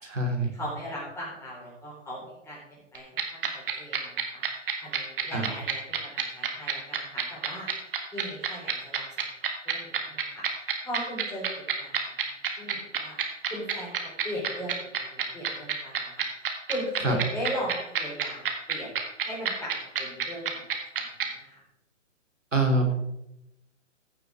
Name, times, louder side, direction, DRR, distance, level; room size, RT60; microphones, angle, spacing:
voice 1, 0.0-0.6 5.3-5.5 17.0-17.2 22.5-22.9, right 2 dB, 85° right, 3 dB, 3.1 m, -25 dB
voice 2, 0.5-4.4 4.8-9.1 9.4-10.4 10.8-12.0 12.3-13.2 13.5-13.9 14.2-16.3 16.7-18.9 19.2-19.7 20.0-20.6 21.0-21.6, equal, 5° left, -5 dB, 3.7 m, -38 dB
sound 1, 3.0-21.3, right 9 dB, 45° right, 1.8 m, -27 dB
15.0 x 5.9 x 4.7 m, 0.84 s
figure-of-eight pair, 140°, 37 cm